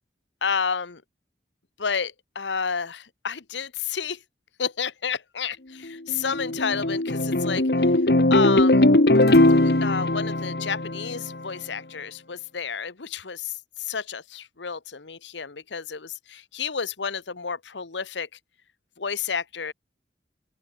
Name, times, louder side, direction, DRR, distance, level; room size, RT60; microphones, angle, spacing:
voice 1, 0.4-1.0 1.8-4.2 4.6-7.6 8.3-8.8 9.6-13.5 13.8-18.3 19.0-19.7, left 6 dB, 85° left, 1.1 m, -30 dB
sound 1, 5.9-11.5, left 1 dB, 60° left, 1.5 m, -20 dB
open air
head